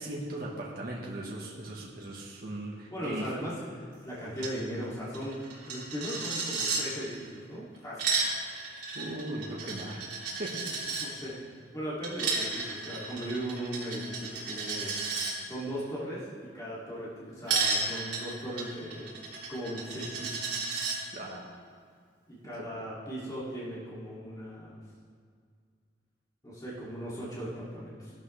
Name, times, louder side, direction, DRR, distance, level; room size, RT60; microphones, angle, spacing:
voice 1, 0.0-3.3 8.9-10.0 10.4-10.6 21.1-21.5 22.5-22.7, right 1 dB, 55° right, -3 dB, 1.5 m, -38 dB
voice 2, 1.2-1.6 2.9-5.4 5.6-8.2 10.7-15.0 15.4-20.5 22.3-24.8 26.4-28.1, equal, 20° left, -9 dB, 2.7 m, -38 dB
Coin (dropping), 4.4-4.5 4.8-4.9 5.1-6.8 7.7-11.1 12.0-15.3 17.5-21.0, right 4 dB, 75° right, 3.2 m, -33 dB
15.5 x 12.5 x 3.4 m, 2.1 s
head